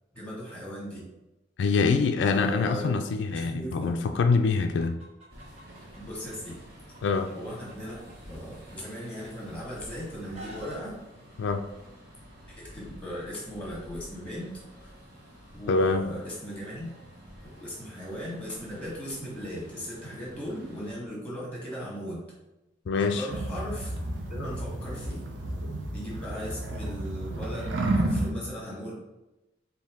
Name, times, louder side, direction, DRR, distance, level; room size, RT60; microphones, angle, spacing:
voice 1, 0.1-1.1 2.2-2.9 3.3-4.2 6.0-6.6 7.3-8.0 8.3-11.0 12.5-14.9 15.5-16.9 17.5-22.2 23.1-23.9 24.3-25.3 25.9-28.9, equal, 5° left, -5 dB, 1.5 m, -38 dB
voice 2, 1.6-5.0 7.0-7.3 11.4-11.7 15.7-16.1 22.9-23.3, left 4 dB, 65° left, 6 dB, 0.3 m, -25 dB
Chicken rooster, 4.8-6.5 6.9-9.5 9.9-10.8, right 1 dB, 35° right, 0.8 m, -48 dB
sound 1, 5.3-21.0, equal, 55° right, 1.4 m, -49 dB
sound 2, 23.3-28.3, right 1 dB, 75° right, 0.6 m, -31 dB
4.4 x 2.7 x 3.5 m, 0.99 s
head